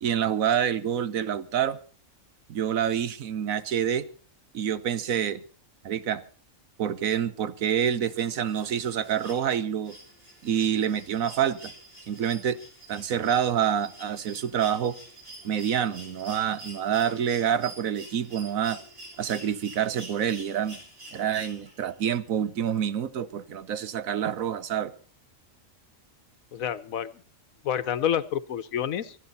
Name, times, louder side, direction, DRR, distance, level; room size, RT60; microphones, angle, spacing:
voice 1, 0.0-1.8 2.5-4.1 4.5-5.4 5.8-6.2 6.8-10.0 10.4-11.7 12.1-12.6 12.9-15.0 15.4-18.8 19.2-20.8 21.1-24.9, right 9 dB, 85° right, 14 dB, 1.4 m, -27 dB
sound 1, 8.1-22.0 23.4-23.5, right 2 dB, 45° right, 6.0 m, -47 dB
voice 2, 26.5-27.1 27.6-29.2, left 9 dB, 90° left, 14 dB, 1.3 m, -28 dB
25.5 x 10.0 x 4.1 m, 0.40 s
omnidirectional pair, 1.4 m